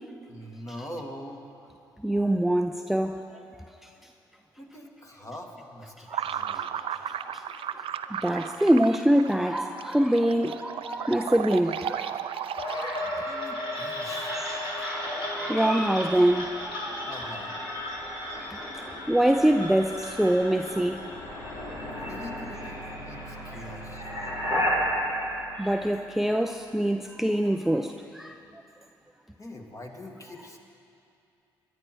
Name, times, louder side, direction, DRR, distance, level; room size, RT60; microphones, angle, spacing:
voice 1, 0.3-1.4 4.6-6.7 13.2-14.3 17.1-17.6 21.9-24.0 29.4-30.6, left 1 dB, 30° left, 1 dB, 2.3 m, -43 dB
voice 2, 2.0-3.2 6.1-6.6 7.2-13.1 14.2-17.1 18.5-21.0 23.5-23.6 25.6-28.4, right 1 dB, 5° right, 6 dB, 0.6 m, -25 dB
sound 1, 6.1-13.3, right 9 dB, 55° right, 0.6 m, -35 dB
sound 2, 12.6-26.5, left 1 dB, 50° left, 4.1 m, -33 dB
22.5 x 10.5 x 4.7 m, 2.8 s
hypercardioid pair, 45°, 11 cm